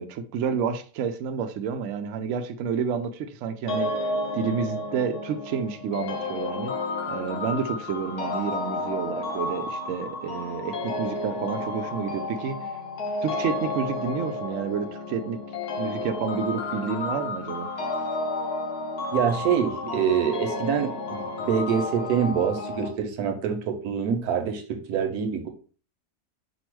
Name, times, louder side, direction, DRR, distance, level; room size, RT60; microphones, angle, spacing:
voice 1, 0.0-6.7 7.1-12.7 13.2-15.4 15.8-17.7, right 6 dB, 70° right, 0.8 m, -30 dB
sound 1, 3.7-22.9, left 2 dB, 85° left, 1.4 m, -31 dB
voice 2, 19.1-25.5, right 7 dB, 85° right, 1.2 m, -25 dB
5.1 x 2.1 x 4.5 m
omnidirectional pair, 1.6 m